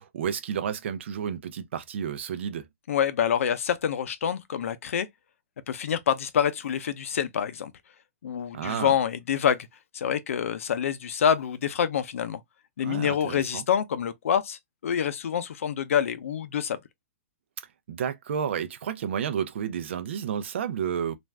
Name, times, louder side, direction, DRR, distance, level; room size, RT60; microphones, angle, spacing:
voice 1, 0.0-2.7 8.5-8.9 12.8-13.6 17.9-21.1, right 8 dB, 50° right, 0.6 m, -31 dB
voice 2, 2.9-5.1 5.7-7.7 8.2-9.7 9.9-12.4 12.8-16.8, left 8 dB, 65° left, 0.5 m, -26 dB
2.5 x 2.2 x 3.2 m
hypercardioid pair, 175°, 8 cm